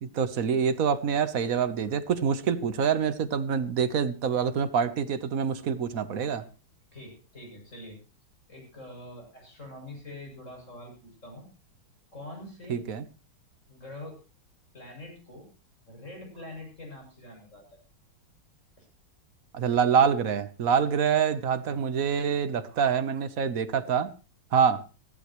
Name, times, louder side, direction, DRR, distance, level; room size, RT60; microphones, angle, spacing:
voice 1, 0.0-6.4 12.7-13.0 19.5-24.1 24.5-24.8, right 7 dB, 50° right, 1.2 m, -26 dB
voice 2, 6.9-8.0 8.5-11.5 12.1-12.8 13.7-14.2 14.7-15.5 15.9-17.6 18.8-18.9 21.6-21.8, left 1 dB, 35° left, 8.1 m, -44 dB
21.5 x 15.0 x 3.1 m
omnidirectional pair, 2.3 m